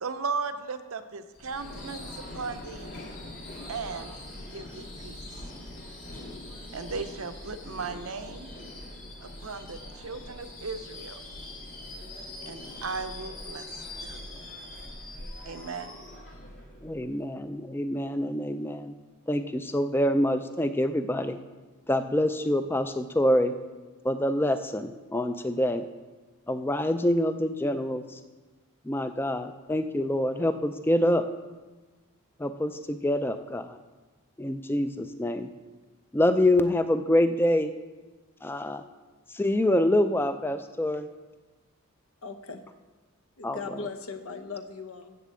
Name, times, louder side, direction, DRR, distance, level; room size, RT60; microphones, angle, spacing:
voice 1, 0.0-2.9 3.7-5.2 6.7-8.5 9.2-11.2 12.5-14.2 15.5-15.9, right 4 dB, 75° right, 9 dB, 0.6 m, -37 dB
Subway metro underground / Screech, 1.3-17.3, left 1 dB, 55° left, 2.2 m, -42 dB
voice 2, 16.8-18.9 19.3-21.4 21.9-23.5 24.0-25.8 26.5-28.2 28.8-31.3 32.4-33.8 34.4-35.5 36.1-37.7 38.4-38.8 39.3-41.1 43.4-43.6, left 1 dB, 10° left, 10 dB, 0.3 m, -26 dB
voice 3, 42.2-42.6 43.4-45.2, left 4 dB, 75° left, 9 dB, 0.8 m, -38 dB
7.5 x 6.8 x 7.5 m, 1.3 s
head